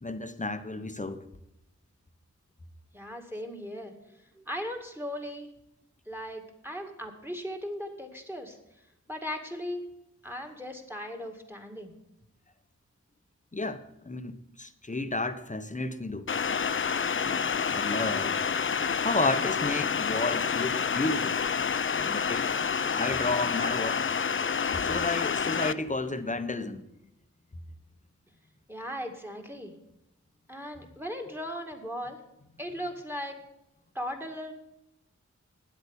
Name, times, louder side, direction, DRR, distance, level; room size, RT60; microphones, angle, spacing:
voice 1, 0.0-1.2 13.5-16.2 17.1-18.4 19.0-21.4 22.0-22.6 22.9-24.1 24.8-26.8, left 2 dB, 25° left, 1.0 m, -32 dB
voice 2, 2.9-5.5 6.1-8.6 9.1-9.9 10.2-11.9 28.7-29.7 30.5-32.2 32.6-33.4 33.9-34.5, equal, 5° right, 2.0 m, -38 dB
sound 1, 16.3-25.7, left 6 dB, 40° left, 0.5 m, -28 dB
9.6 x 8.1 x 7.1 m
cardioid pair, 45°, 31 cm